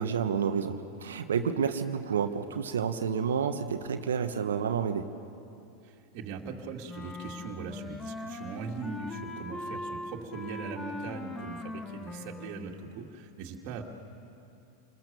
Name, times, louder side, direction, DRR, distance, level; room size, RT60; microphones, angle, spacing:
voice 1, 0.0-5.1, right 7 dB, 80° right, 7 dB, 1.2 m, -30 dB
voice 2, 5.8-13.8, right 5 dB, 50° right, -1 dB, 2.5 m, -40 dB
Wind instrument woodwind instrument, 6.8-12.7, left 2 dB, 15° left, 1.6 m, -40 dB
28.0 x 21.0 x 6.9 m, 2.8 s
hypercardioid pair, 95°, 0 cm